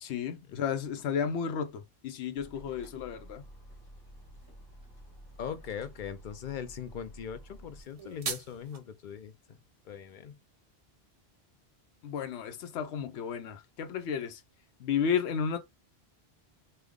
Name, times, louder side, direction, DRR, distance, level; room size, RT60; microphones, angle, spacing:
voice 1, 0.0-3.4 12.0-14.4 14.8-15.6, left 7 dB, 90° left, 0.9 m, -33 dB
sound 1, 2.4-7.8, right 1 dB, 20° left, 1.5 m, -51 dB
voice 2, 5.4-9.6 9.8-10.4, left 8 dB, 55° left, 0.6 m, -40 dB
sound 2, 7.8-8.8, right 6 dB, 45° right, 0.5 m, -38 dB
3.3 x 2.2 x 3.5 m
omnidirectional pair, 1.1 m